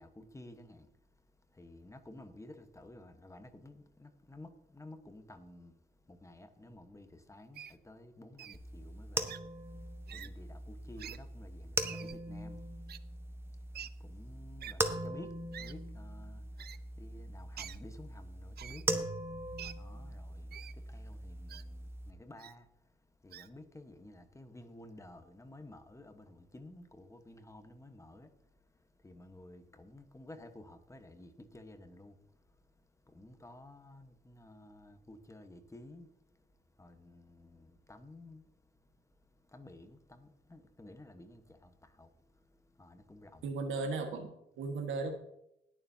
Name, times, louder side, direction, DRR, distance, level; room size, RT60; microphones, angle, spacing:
voice 1, 0.0-43.4, left 1 dB, 15° left, 1.2 m, -54 dB
Wild animals, 7.5-7.7 8.4-8.6 9.3-9.4 10.1-10.3 11.0-11.2 11.8-12.2 12.9-13.0 13.7-13.9 14.6-14.7 15.5-15.7 16.6-16.8 17.6-17.8 18.6-18.8 19.6-19.7 20.5-20.7 21.5-21.6 22.4-22.5 23.3-23.5, right 10 dB, 55° right, 0.5 m, -46 dB
sound 1, 8.5-22.1, right 1 dB, 10° right, 1.0 m, -40 dB
voice 2, 43.4-45.2, right 3 dB, 80° right, 1.6 m, -36 dB
20.0 x 7.0 x 2.8 m
cardioid pair, 90°, 20 cm